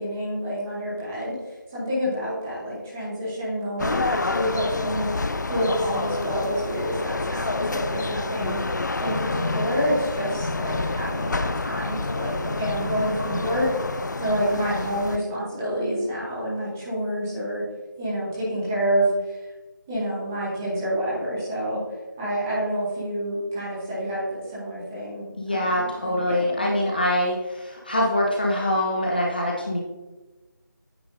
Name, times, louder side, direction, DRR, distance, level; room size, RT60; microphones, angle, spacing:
voice 1, 0.0-1.3 1.7-5.1 5.5-8.6 9.0-17.6 18.0-19.4 19.9-21.8 22.2-26.7, equal, 10° right, -8 dB, 1.0 m, -28 dB
sound 1, 3.8-15.2, left 3 dB, 60° left, 0.4 m, -28 dB
voice 2, 25.3-29.8, left 1 dB, 25° left, -2 dB, 0.7 m, -24 dB
8.6 x 5.7 x 2.6 m, 1.1 s
figure-of-eight pair, 170°, 11 cm